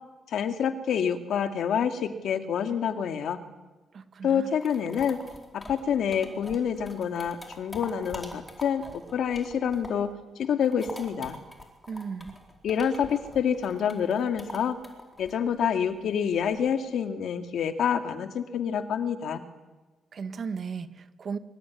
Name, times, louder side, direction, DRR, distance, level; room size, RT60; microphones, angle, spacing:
voice 1, 0.3-3.4 4.2-5.2 5.5-10.1 10.4-11.4 12.6-14.8 15.2-19.4, left 7 dB, 65° left, 8 dB, 2.3 m, -27 dB
voice 2, 3.9-4.6 11.9-12.3 20.1-21.4, right 5 dB, 40° right, 11 dB, 1.5 m, -36 dB
sound 1, 4.3-10.1 10.4-16.7, left 1 dB, 10° left, 4.3 m, -45 dB
24.5 x 24.0 x 10.0 m, 1.2 s
wide cardioid pair, 170°, 0 cm